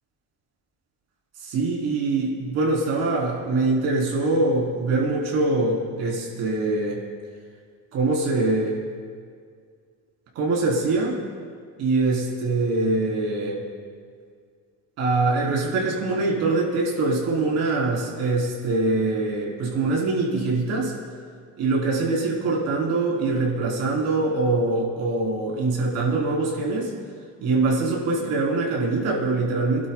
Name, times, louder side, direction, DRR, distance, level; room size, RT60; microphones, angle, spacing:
voice 1, 1.4-7.0 7.9-8.8 10.3-11.2 11.8-13.6 15.0-20.9 21.6-26.9 27.4-29.9, right 3 dB, 60° right, -3 dB, 3.9 m, -23 dB
29.5 x 12.0 x 2.4 m, 2.1 s
cardioid pair, 175°, 30 cm